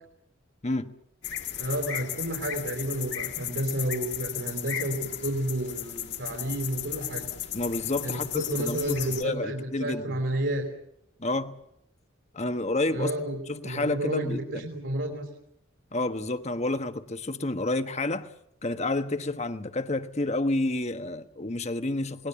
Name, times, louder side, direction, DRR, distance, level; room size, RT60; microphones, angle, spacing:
sound 1, 1.2-9.2, left 11 dB, 60° left, 2.0 m, -35 dB
voice 1, 1.6-7.3 8.0-10.7 12.9-15.3, right 1 dB, 65° right, 4.6 m, -31 dB
voice 2, 7.5-10.2 11.2-11.5 12.3-14.6 15.9-18.3 18.6-22.3, left 2 dB, 35° left, 1.3 m, -30 dB
28.5 x 20.0 x 7.2 m
head